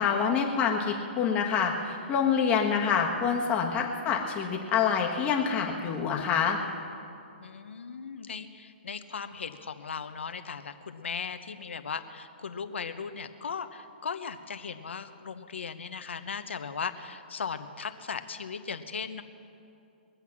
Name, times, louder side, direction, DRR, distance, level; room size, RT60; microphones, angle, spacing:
voice 1, 0.0-6.6, left 6 dB, 20° left, 0 dB, 1.4 m, -26 dB
voice 2, 7.4-19.2, left 6 dB, 90° left, 9 dB, 1.0 m, -37 dB
22.5 x 8.3 x 6.0 m, 2.7 s
hypercardioid pair, 155°, 6 cm